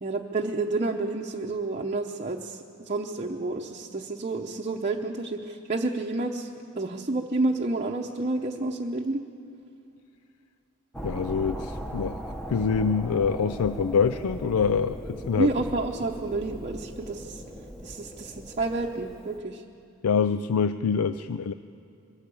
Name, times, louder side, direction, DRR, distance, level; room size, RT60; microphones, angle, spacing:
voice 1, 0.0-6.5 6.7-9.2 15.4-17.4 17.8-19.6, right 2 dB, 35° right, 0 dB, 0.8 m, -29 dB
sound 1, 10.9-19.4, equal, 5° left, 1.0 m, -38 dB
voice 2, 11.0-15.5 20.0-21.5, left 6 dB, 90° left, 12 dB, 0.4 m, -25 dB
22.5 x 13.5 x 8.5 m, 2.6 s
head